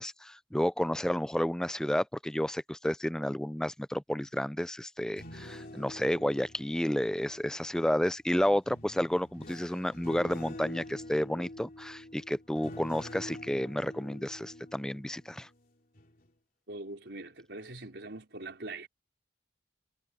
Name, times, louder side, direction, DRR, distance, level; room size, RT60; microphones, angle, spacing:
voice 1, 0.0-15.5, equal, 5° left, 0.4 m, -31 dB
sound 1, 5.0-7.9 8.6-15.6 15.9-16.3, left 1 dB, 55° left, 3.1 m, -46 dB
voice 2, 16.7-18.9, right 2 dB, 75° right, 4.7 m, -42 dB
head